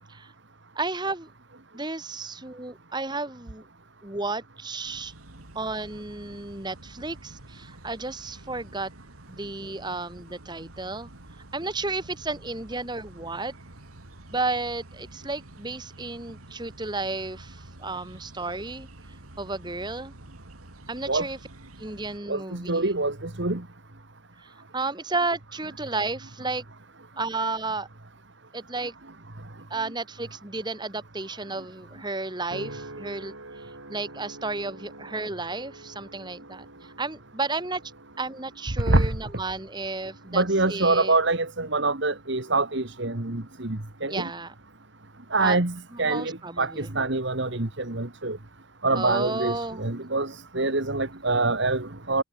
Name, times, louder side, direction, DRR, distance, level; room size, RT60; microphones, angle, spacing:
voice 1, 0.7-1.3 1.7-3.6 4.0-5.1 5.5-8.9 9.3-11.1 11.5-13.5 14.3-18.9 19.4-20.1 20.9-21.4 21.8-22.9 24.4-26.6 27.2-27.9 28.5-28.9 29.7-33.6 33.9-37.8 38.2-41.1 44.1-44.5 45.4-45.6 45.9-46.9 48.9-49.9, right 3 dB, 20° right, 1.7 m, -32 dB
sound 1, 4.8-22.2, right 1 dB, 90° right, 3.0 m, -48 dB
voice 2, 22.3-23.6 38.9-39.1 40.3-44.3 45.3-48.4 48.8-52.2, right 2 dB, 55° right, 1.8 m, -25 dB
sound 2, 32.5-47.0 47.5-47.9, right 2 dB, 70° right, 7.0 m, -48 dB
head